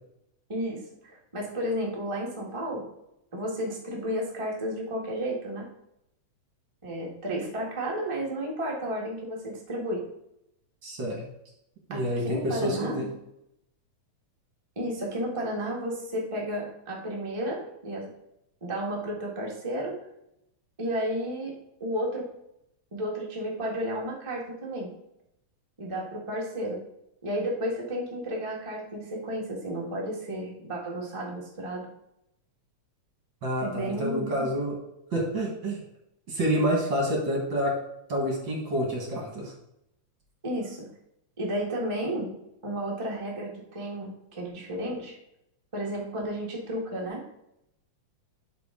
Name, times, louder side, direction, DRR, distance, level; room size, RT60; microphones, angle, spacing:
voice 1, 0.5-2.8 3.3-5.7 6.8-10.1 11.9-13.1 14.7-18.1 18.6-20.0 20.8-22.3 22.9-24.9 25.8-26.8 27.2-31.9 33.6-34.5 40.4-40.9 41.4-42.3 42.6-45.2 45.7-47.2, equal, 20° right, -3 dB, 0.8 m, -32 dB
voice 2, 10.8-11.2 11.9-13.1 33.4-34.8 35.1-35.8 36.3-37.7 38.1-39.5, equal, 45° right, -1 dB, 2.0 m, -28 dB
12.0 x 4.8 x 3.8 m, 0.81 s
omnidirectional pair, 3.6 m